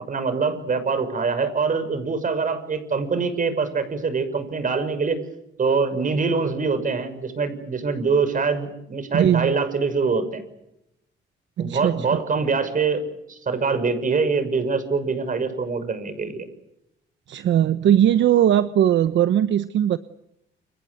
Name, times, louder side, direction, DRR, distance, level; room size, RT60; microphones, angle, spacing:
voice 1, 0.0-5.2 5.6-10.4 11.6-13.0 13.3-16.5, right 4 dB, 40° right, 11 dB, 6.3 m, -24 dB
voice 2, 9.1-9.5 11.6-12.2 17.3-20.0, right 10 dB, 70° right, 12 dB, 1.0 m, -19 dB
29.5 x 25.0 x 6.6 m, 0.84 s
cardioid pair, 90°, 20 cm